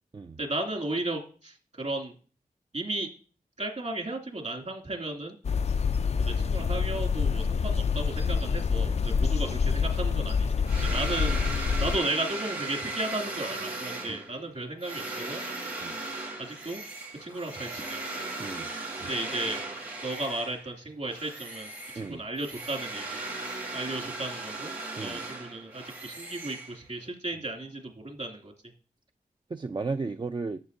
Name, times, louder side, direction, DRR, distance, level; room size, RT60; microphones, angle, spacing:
voice 1, 0.4-2.1 2.7-3.1 3.6-5.3 6.3-10.5 10.8-11.4 11.8-15.4 16.4-16.8 17.2-18.0 19.0-19.6 20.0-23.2 23.7-24.7 25.0-28.5, right 2 dB, 50° right, 0 dB, 2.6 m, -34 dB
sound 1, 5.4-12.0, left 5 dB, 45° left, 0.4 m, -26 dB
sound 2, 10.7-20.7 21.1-27.1, right 2 dB, 90° right, 2.2 m, -37 dB
voice 2, 29.5-30.6, right 4 dB, 30° right, 7 dB, 0.4 m, -34 dB
11.5 x 7.0 x 2.7 m, 0.40 s
cardioid pair, 40°, 15 cm